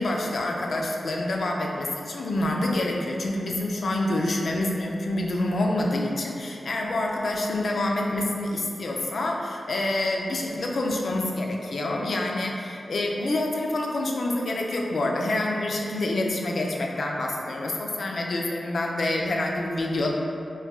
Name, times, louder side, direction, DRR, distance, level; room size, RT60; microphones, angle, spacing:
voice 1, 0.0-20.1, left 1 dB, 70° left, -1 dB, 0.4 m, -27 dB
4.3 x 2.2 x 2.3 m, 2.6 s
cardioid pair, 45°, 0 cm